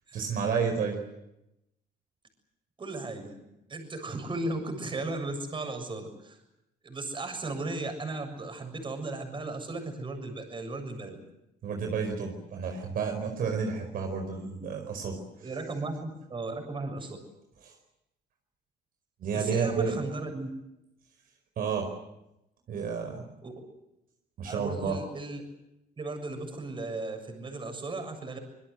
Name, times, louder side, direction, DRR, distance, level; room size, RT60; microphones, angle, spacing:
voice 1, 0.1-1.0 11.6-15.2 17.6-17.7 19.2-20.0 21.6-21.9 22.7-23.2 24.4-25.0, right 5 dB, 60° right, 4 dB, 4.8 m, -30 dB
voice 2, 2.8-3.3 3.7-6.4 6.8-11.2 15.4-17.2 19.3-20.5 23.4-23.5 24.4-25.4 26.0-28.4, right 2 dB, 30° right, 5 dB, 7.2 m, -36 dB
26.0 x 21.5 x 7.9 m, 0.88 s
cardioid pair, 110°, 17 cm